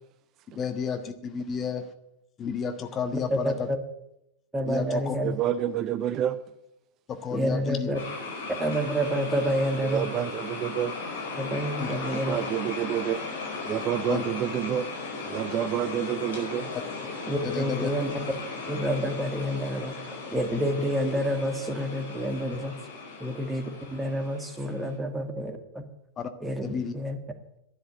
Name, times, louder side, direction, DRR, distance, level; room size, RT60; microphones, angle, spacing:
voice 1, 0.5-1.9 2.4-3.7 4.6-5.2 7.1-7.9 11.8-11.9 14.1-14.2 16.7-16.8 17.4-17.9 26.2-26.3 26.6-26.9, left 6 dB, 25° left, 8 dB, 1.3 m, -31 dB
voice 2, 4.5-5.3 7.3-8.0 8.6-10.1 11.4-12.4 17.3-18.1 18.7-19.9 20.3-22.7 23.2-25.8 26.4-26.6 26.9-27.2, equal, 10° right, 6 dB, 2.1 m, -28 dB
voice 3, 5.2-6.4 9.8-11.0 12.1-13.3 13.6-14.9 15.3-16.7, right 11 dB, 35° right, 14 dB, 0.5 m, -28 dB
sound 1, 7.9-24.9, left 4 dB, 65° left, 4.5 m, -37 dB
11.5 x 10.5 x 9.5 m, 0.83 s
figure-of-eight pair, 90°, 0 cm